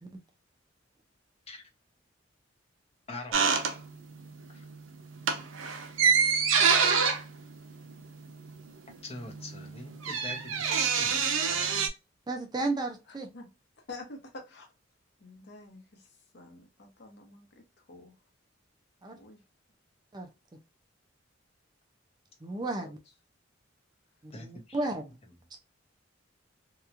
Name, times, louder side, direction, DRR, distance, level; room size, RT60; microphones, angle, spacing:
voice 1, 3.1-3.4 4.5-4.7 9.0-11.9 24.3-24.8, left 2 dB, 30° left, 2 dB, 0.7 m, -44 dB
sound 1, 3.3-4.3 4.6-4.8 5.1-8.6 8.9-9.0 9.2-11.9, right 6 dB, 85° right, 0.5 m, -26 dB
voice 2, 12.3-13.3 19.0-19.2 20.1-20.3 22.4-23.0 24.2-25.1, right 2 dB, 20° right, 4 dB, 0.4 m, -33 dB
voice 3, 13.9-14.7 15.2-16.1 16.3-17.6 17.9-18.1 19.1-19.4 22.7-22.9, left 2 dB, 60° left, 3 dB, 0.8 m, -47 dB
2.9 x 2.3 x 2.4 m, 0.26 s
head